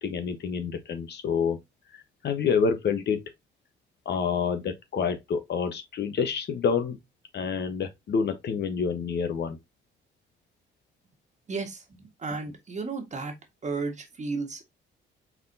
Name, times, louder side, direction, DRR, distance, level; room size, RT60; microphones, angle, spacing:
voice 1, 0.0-1.6 2.2-3.2 4.0-7.0 7.3-9.6, left 6 dB, 60° left, 1.1 m, -27 dB
voice 2, 11.5-13.3 13.6-14.6, right 4 dB, 35° right, 1.6 m, -33 dB
4.7 x 3.9 x 2.7 m
cardioid pair, 90°, 20 cm